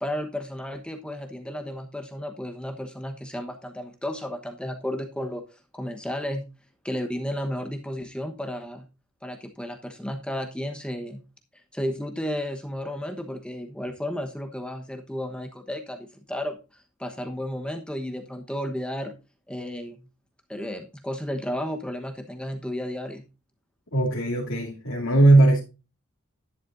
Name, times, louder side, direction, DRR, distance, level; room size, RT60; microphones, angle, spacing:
voice 1, 0.0-6.4 6.8-8.9 9.2-11.2 11.7-19.1 19.5-20.0 20.5-23.2, equal, 5° left, 1.1 m, -33 dB
voice 2, 23.9-25.6, right 2 dB, 65° left, 2.8 m, -19 dB
11.5 x 10.5 x 2.6 m
head